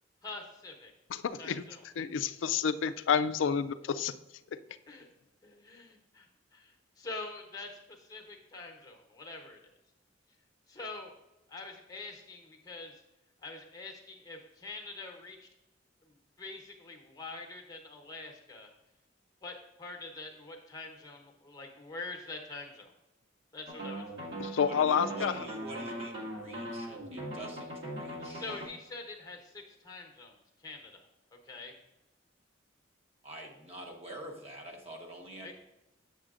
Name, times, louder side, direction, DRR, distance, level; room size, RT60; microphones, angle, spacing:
voice 1, 0.2-0.9 1.4-1.8 4.9-5.1 5.4-9.6 10.7-11.1 11.5-13.0 13.4-15.5 16.0-18.7 19.4-22.9 23.5-24.1 28.2-30.3 30.6-31.0 31.3-31.7 35.4-35.5, left 3 dB, 20° left, 2 dB, 1.0 m, -45 dB
voice 2, 1.1-1.6 2.0-4.2 24.4-25.3, left 7 dB, 85° left, 13 dB, 0.4 m, -29 dB
sound 1, 23.7-28.7, right 1 dB, 65° right, 1.8 m, -40 dB
voice 3, 24.6-28.5 33.2-35.5, right 1 dB, 35° right, 1 dB, 1.1 m, -46 dB
7.6 x 7.3 x 2.5 m, 0.97 s
head